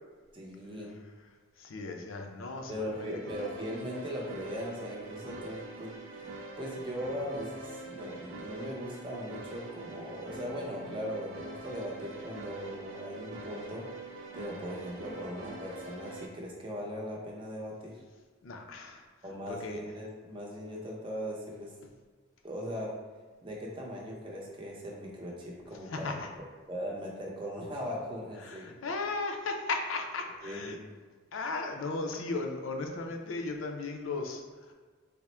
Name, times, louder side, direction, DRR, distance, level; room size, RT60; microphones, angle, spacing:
voice 1, 0.3-1.0 2.7-5.9 6.6-13.8 14.3-17.9 19.2-21.7 22.4-22.9 23.4-26.1 26.7-28.7 30.4-30.8, equal, 25° right, -3 dB, 0.6 m, -39 dB
voice 2, 1.6-3.3 18.4-19.1 19.5-19.8 25.8-26.3 28.4-30.8 31.3-34.7, left 3 dB, 85° left, 3 dB, 0.5 m, -36 dB
sound 1, 2.9-16.3, right 2 dB, 80° right, 0.5 m, -44 dB
3.5 x 2.1 x 4.2 m, 1.4 s
head